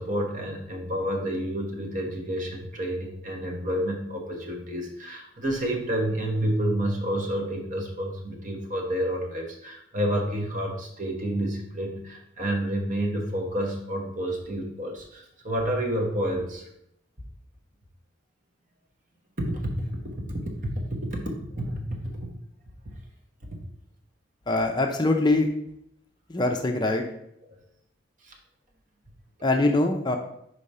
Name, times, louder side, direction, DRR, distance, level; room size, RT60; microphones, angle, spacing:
voice 1, 0.0-16.7 19.4-19.9 20.2-20.8 21.1-22.3 28.2-28.3, right 1 dB, 45° right, 1 dB, 1.1 m, -29 dB
voice 2, 24.5-25.5 26.3-27.0 29.4-30.2, left 2 dB, 25° left, 3 dB, 0.5 m, -23 dB
5.1 x 4.6 x 4.2 m, 0.76 s
head